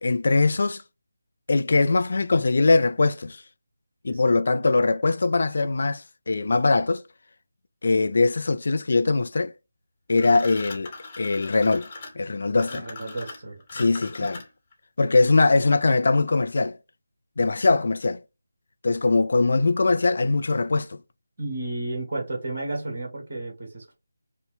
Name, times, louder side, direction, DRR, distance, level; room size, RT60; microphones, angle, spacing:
voice 1, 0.0-0.8 1.5-3.4 4.0-7.0 7.8-9.5 10.1-10.9 11.2-11.9 12.2-12.9 13.7-14.4 15.0-16.8 17.4-18.2 18.8-21.0, left 3 dB, 50° left, 0.4 m, -21 dB
voice 2, 4.1-4.6 12.7-13.6 21.4-24.0, right 2 dB, 40° right, 1.7 m, -33 dB
sound 1, 10.1-14.7, left 3 dB, 25° left, 1.0 m, -41 dB
5.2 x 2.1 x 3.1 m
figure-of-eight pair, 155°, 0 cm